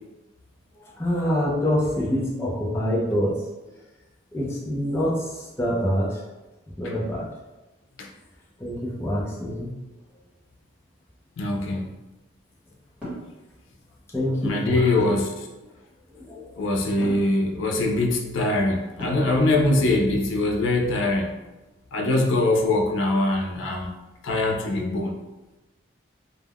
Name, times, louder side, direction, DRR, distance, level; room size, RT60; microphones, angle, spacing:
voice 1, 1.0-3.5 4.3-5.2 5.6-6.2 6.8-7.3 8.6-9.7 14.1-14.8 16.3-16.4, equal, 15° left, -5 dB, 0.5 m, -25 dB
voice 2, 11.4-11.9 14.4-15.5 16.6-21.3 21.9-23.9 24.2-25.1, left 2 dB, 75° left, 2 dB, 0.4 m, -23 dB
sound 1, 13.0-13.3 15.0-15.4 17.0-17.3 19.0-19.4, right 1 dB, 5° right, 1.1 m, -34 dB
2.3 x 2.1 x 3.4 m, 1.1 s
head